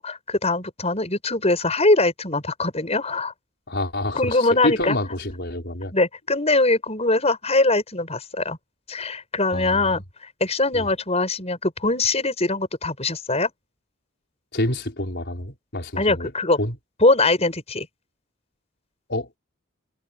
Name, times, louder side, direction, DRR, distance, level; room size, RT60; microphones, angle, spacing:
voice 1, 0.0-3.3 4.1-5.0 5.9-8.6 8.9-13.5 16.0-16.6 17.0-17.9, left 2 dB, 30° left, 6.7 m, -22 dB
voice 2, 3.7-5.9 9.5-10.0 10.7-10.9 14.5-16.3 16.6-16.8 19.1-19.3, left 1 dB, 50° left, 5.2 m, -28 dB
head